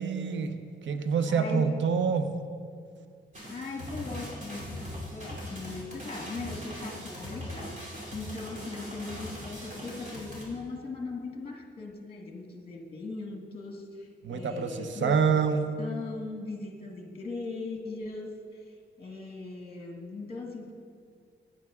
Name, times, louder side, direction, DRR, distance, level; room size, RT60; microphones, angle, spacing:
voice 1, 0.0-2.3 14.2-15.7, right 6 dB, 75° right, 8 dB, 0.7 m, -27 dB
voice 2, 1.3-1.8 3.5-7.8 8.1-15.4 15.8-20.7, left 3 dB, 30° left, 1 dB, 1.3 m, -39 dB
sound 1, 3.3-10.4, left 1 dB, 40° right, 2.9 m, -40 dB
12.5 x 9.5 x 3.6 m, 2.2 s
wide cardioid pair, 120°, 19 cm